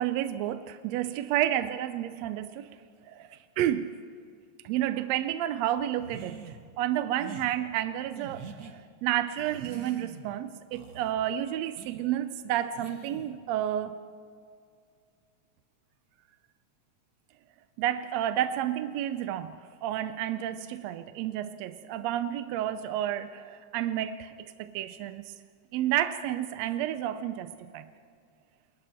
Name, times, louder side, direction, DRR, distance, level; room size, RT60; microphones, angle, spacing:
voice 1, 0.0-2.7 3.0-3.9 4.6-6.4 6.8-14.0 17.8-25.3 25.7-27.9, right 12 dB, 75° right, 11 dB, 1.7 m, -31 dB
sound 1, 6.0-6.6 7.2-7.5 8.1-8.7 9.3-10.3 10.7-11.1 11.8-12.0 12.7-13.4, right 5 dB, 50° right, 1.2 m, -45 dB
28.5 x 22.0 x 4.4 m, 2.2 s
omnidirectional pair, 3.4 m